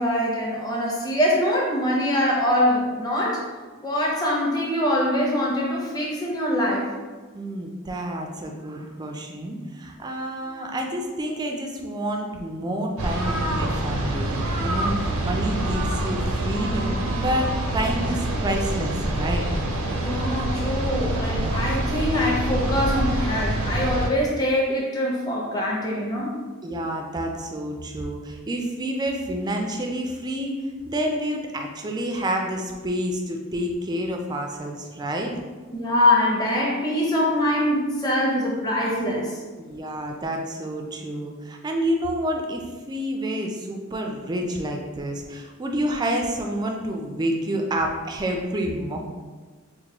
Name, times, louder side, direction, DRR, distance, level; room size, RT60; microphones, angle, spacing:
voice 1, 0.0-3.4 3.8-6.9 20.0-26.3 35.7-39.4, left 1 dB, 20° left, -3 dB, 0.7 m, -23 dB
voice 2, 7.3-19.5 26.6-35.4 39.6-49.0, right 1 dB, 20° right, 2 dB, 0.3 m, -29 dB
sound 1, 13.0-24.1, right 1 dB, 90° right, 0.5 m, -26 dB
4.4 x 2.2 x 2.9 m, 1.4 s
head